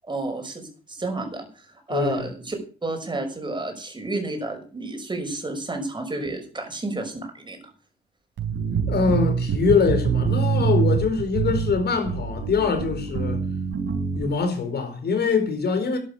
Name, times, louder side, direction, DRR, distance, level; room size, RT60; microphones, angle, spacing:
voice 1, 0.0-7.6, right 2 dB, 25° right, 6.0 m, -31 dB
voice 2, 1.9-2.3 8.9-13.4 14.1-16.0, left 5 dB, 55° left, 4.9 m, -23 dB
sound 1, 8.4-14.4, right 6 dB, 70° right, 4.3 m, -25 dB
12.5 x 11.5 x 6.9 m
cardioid pair, 90°, 20 cm